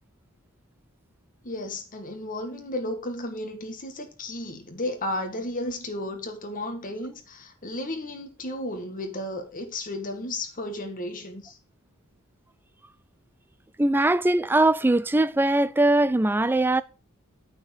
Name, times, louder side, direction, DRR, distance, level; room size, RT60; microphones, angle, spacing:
voice 1, 1.4-11.6, left 1 dB, 40° left, 1.8 m, -33 dB
voice 2, 13.8-16.8, right 2 dB, 10° right, 0.4 m, -21 dB
8.9 x 4.5 x 7.2 m
head